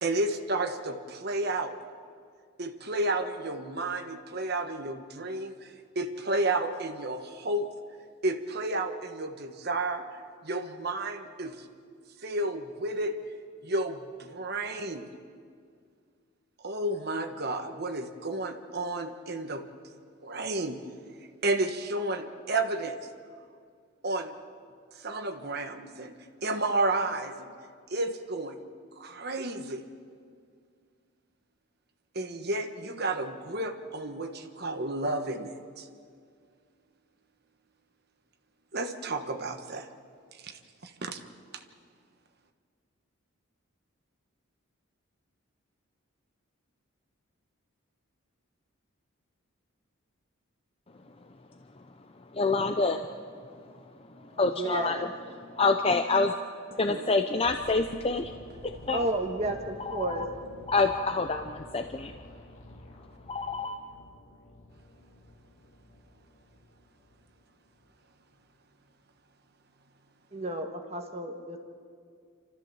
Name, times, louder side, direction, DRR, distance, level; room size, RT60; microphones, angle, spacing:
voice 1, 0.0-1.7 2.6-7.7 8.2-10.1 10.4-11.6 12.2-13.2 13.6-15.1 16.6-19.6 20.2-20.8 21.4-22.9 24.0-24.3 25.0-26.1 26.4-27.5 27.9-28.6 29.0-29.8 32.1-35.9 38.7-39.9 40.4-40.5 40.8-41.2 41.5-41.6, right 2 dB, 50° right, 5 dB, 1.3 m, -31 dB
voice 2, 52.3-53.1 54.4-55.1 55.6-56.3 56.8-58.3 58.9-59.1 59.8-60.3 60.7-62.1 63.3-63.8, left 3 dB, 30° left, 6 dB, 0.6 m, -27 dB
voice 3, 54.3-55.1 56.9-57.0 58.9-60.3 70.3-71.6, right 1 dB, 30° right, 4 dB, 1.5 m, -32 dB
sound 1, 57.4-67.4 67.7-67.9, left 1 dB, 75° left, 2.2 m, -50 dB
28.0 x 14.0 x 7.2 m, 2.2 s
head